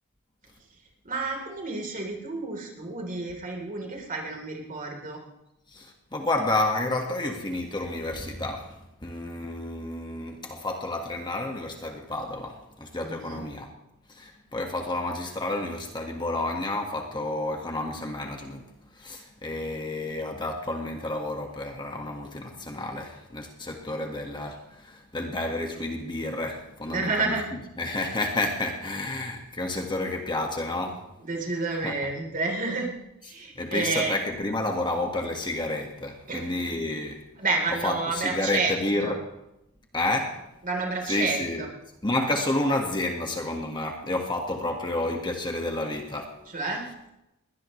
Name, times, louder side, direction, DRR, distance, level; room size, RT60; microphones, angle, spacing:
voice 1, 1.0-5.2 13.0-13.4 26.9-27.5 31.2-32.9 33.2-34.2 36.3-36.5 37.4-38.7 39.0-39.1 40.6-41.7 46.5-46.8, right 3 dB, 40° right, 0 dB, 3.9 m, -30 dB
voice 2, 5.7-13.7 14.1-27.4 27.8-31.1 31.8-31.9 33.6-37.2 37.8-39.2 39.9-40.4 41.0-41.7 42.0-46.4, left 2 dB, 20° left, 2 dB, 1.8 m, -30 dB
21.5 x 18.0 x 3.3 m, 0.88 s
head